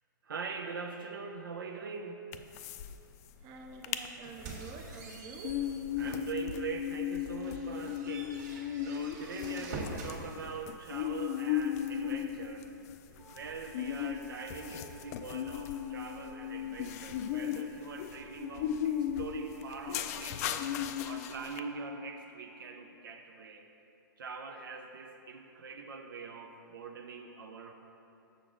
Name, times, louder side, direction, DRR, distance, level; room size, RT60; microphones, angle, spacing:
voice 1, 0.2-2.3 6.0-12.7 13.1-20.7 21.0-23.7 24.2-27.7, right 5 dB, 80° right, 4 dB, 0.5 m, -43 dB
sound 1, 2.3-2.9 3.2-3.3 3.7-4.1 4.5-21.6, left 10 dB, 45° left, 0.3 m, -36 dB
voice 2, 3.4-5.6, right 4 dB, 35° right, 3 dB, 0.8 m, -47 dB
sound 2, 4.2-6.3 6.8-6.9 7.3-10.2, right 2 dB, 55° right, 1.5 m, -45 dB
Wind instrument woodwind instrument, 13.2-22.4, right 4 dB, 5° right, 0.9 m, -60 dB
6.6 x 6.3 x 3.7 m, 2.7 s
hypercardioid pair, 120°, 11 cm